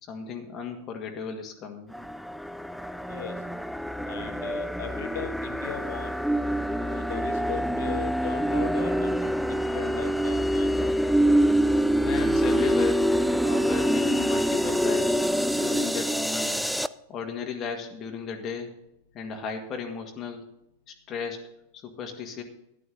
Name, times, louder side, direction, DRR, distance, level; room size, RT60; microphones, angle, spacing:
voice 1, 0.0-1.9 12.0-13.1 13.4-15.2 15.5-16.6 17.1-18.8 19.1-20.5 20.9-21.5 21.7-22.4, left 6 dB, 30° left, 3 dB, 1.8 m, -35 dB
sound 1, 1.9-16.9, equal, ahead, 0.4 m, -25 dB
voice 2, 4.1-6.2 6.7-9.3 9.7-10.9, left 8 dB, 55° left, 9 dB, 1.3 m, -38 dB
12.5 x 11.5 x 3.9 m, 0.79 s
figure-of-eight pair, 90°, 0 cm